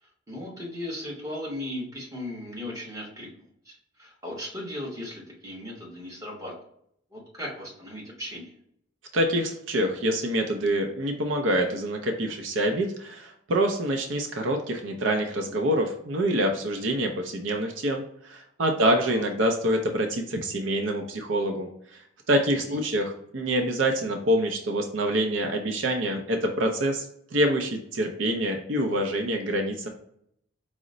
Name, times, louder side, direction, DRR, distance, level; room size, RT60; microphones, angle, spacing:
voice 1, 0.3-3.3 3.6-6.5 7.1-8.5 18.8-19.2 22.5-22.8, left 1 dB, 15° right, -4 dB, 1.1 m, -37 dB
voice 2, 9.1-22.0 22.3-27.1 27.3-29.9, right 1 dB, 70° right, 3 dB, 0.5 m, -26 dB
4.9 x 2.1 x 3.8 m, 0.69 s
head